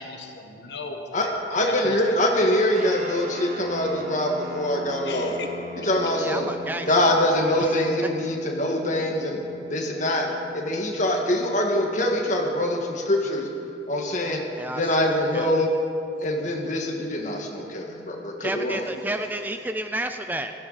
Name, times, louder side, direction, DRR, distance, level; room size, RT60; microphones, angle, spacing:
voice 1, 0.0-2.3 5.0-5.5, left 3 dB, 70° left, 3 dB, 1.4 m, -37 dB
voice 2, 1.1-5.3 5.8-6.5 6.9-9.4 9.7-10.3 10.5-13.5 13.9-14.4 14.7-15.7 16.2-18.8, left 1 dB, 40° left, 0 dB, 1.7 m, -24 dB
sound 1, 2.7-14.5, equal, 40° right, 1.2 m, -40 dB
voice 3, 6.2-7.0 7.6-7.9 14.6-15.5 18.4-20.5, right 1 dB, 10° right, 7 dB, 0.4 m, -31 dB
16.5 x 14.5 x 4.1 m, 2.7 s
head